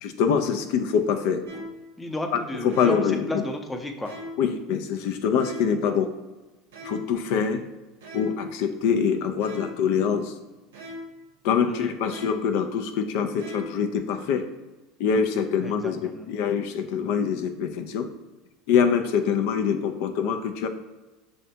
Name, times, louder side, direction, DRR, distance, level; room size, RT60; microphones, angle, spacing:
voice 1, 0.0-1.4 2.3-3.4 4.4-6.1 6.8-7.6 8.1-10.3 11.4-14.4 15.0-18.1 18.7-20.7, left 7 dB, 70° left, 6 dB, 0.3 m, -24 dB
sound 1, 1.5-1.9 2.7-3.2 4.0-4.5 5.4-5.9 6.7-7.2 8.0-8.5 9.4-9.9 10.7-11.2 12.1-12.6 13.4-13.9, left 1 dB, 90° right, 0.7 m, -39 dB
voice 2, 2.0-4.1 11.7-11.9 15.6-16.3, left 2 dB, 10° left, 3 dB, 0.6 m, -33 dB
6.3 x 2.2 x 2.7 m, 1.1 s
supercardioid pair, 95°, 0 cm